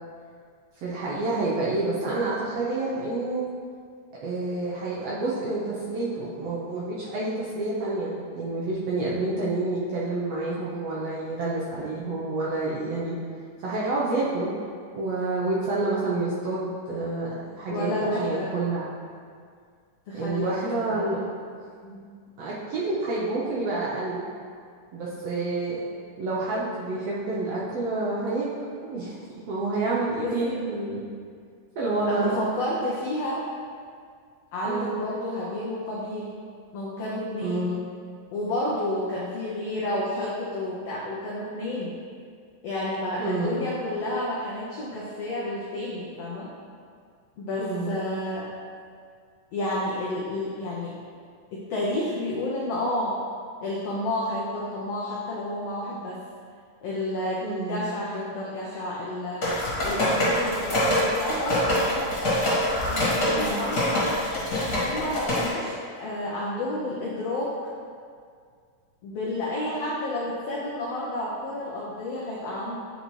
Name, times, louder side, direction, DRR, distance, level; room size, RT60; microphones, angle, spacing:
voice 1, 0.8-3.4 4.2-13.2 13.6-14.5 14.9-17.3 17.5-18.8 20.1-21.2 22.4-24.2 24.9-25.8 26.2-28.5 28.8-29.1 29.5-31.0 31.7-32.4 34.6-34.9 37.4-37.8 43.2-43.6 47.6-47.9 57.4-57.9 63.3-63.6, right 2 dB, 80° right, -7 dB, 1.4 m, -28 dB
voice 2, 17.7-18.5 20.1-21.3 21.8-22.1 30.2-30.6 32.1-33.5 34.5-36.3 36.7-37.8 38.3-41.9 42.6-46.5 47.4-48.5 49.5-50.9 51.5-53.2 53.6-56.2 56.8-57.4 57.7-59.5 59.8-62.1 62.9-64.1 64.8-67.5 69.0-72.8, left 1 dB, 90° left, -5 dB, 1.4 m, -30 dB
sound 1, 59.4-65.5, left 1 dB, 40° left, 1.7 m, -25 dB
9.4 x 4.0 x 3.1 m, 2.1 s
omnidirectional pair, 3.9 m